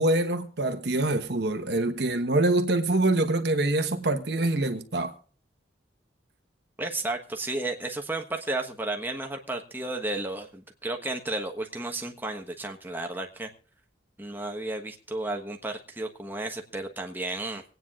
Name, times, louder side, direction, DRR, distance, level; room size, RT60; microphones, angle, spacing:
voice 1, 0.0-5.1, right 2 dB, 60° right, 1.3 m, -25 dB
voice 2, 6.8-13.5 14.2-17.6, right 2 dB, 10° right, 1.3 m, -33 dB
25.5 x 9.3 x 2.5 m
head